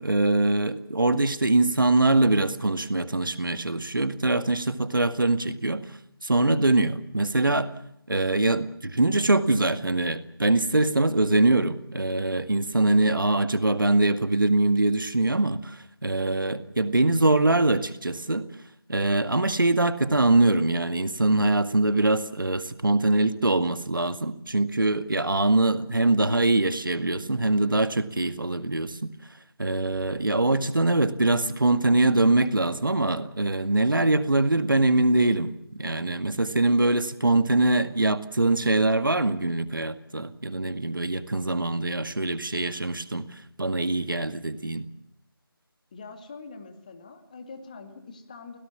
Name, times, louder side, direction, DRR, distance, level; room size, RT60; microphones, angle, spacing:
voice 1, 0.0-5.8 6.2-7.7 8.1-18.4 18.9-29.1 29.6-43.3 43.6-44.9, right 2 dB, 60° right, 11 dB, 2.0 m, -23 dB
voice 2, 45.9-48.6, left 4 dB, 20° left, 7 dB, 2.1 m, -44 dB
28.5 x 18.0 x 7.3 m, 0.77 s
figure-of-eight pair, 165°, 13 cm